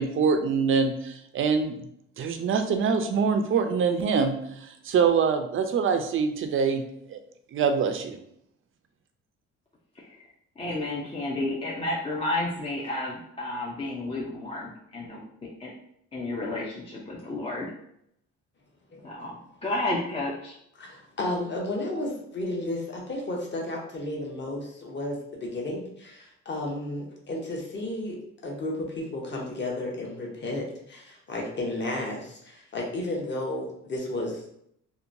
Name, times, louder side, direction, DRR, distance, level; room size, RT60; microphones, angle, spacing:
voice 1, 0.0-1.8 2.2-6.8 7.1-7.2 7.5-8.2, right 5 dB, 45° right, 7 dB, 0.4 m, -24 dB
voice 2, 10.0-15.7 16.1-17.7 19.0-20.6, left 2 dB, 20° left, -4 dB, 0.4 m, -32 dB
voice 3, 20.8-28.2 28.4-34.5, left 1 dB, 40° left, -1 dB, 0.8 m, -33 dB
2.8 x 2.2 x 2.5 m, 0.72 s
cardioid pair, 90°, 30 cm